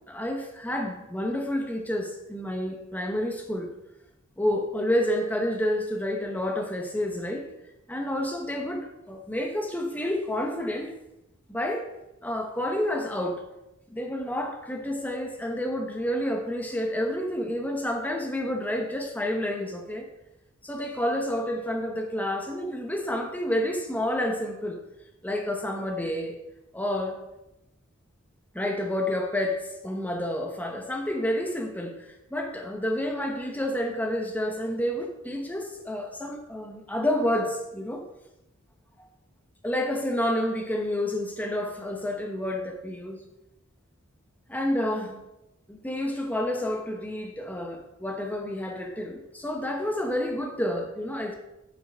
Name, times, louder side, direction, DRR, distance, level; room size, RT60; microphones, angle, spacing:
voice 1, 0.1-3.7 4.4-7.5 7.9-11.0 11.5-11.9 12.2-13.4 13.9-20.1 20.6-24.8 25.2-26.4 26.7-27.2 28.5-38.0 39.0-39.1 39.6-43.2 44.5-45.2 45.7-51.3, left 1 dB, 10° left, 3 dB, 1.2 m, -29 dB
9.7 x 8.0 x 3.7 m, 0.91 s
head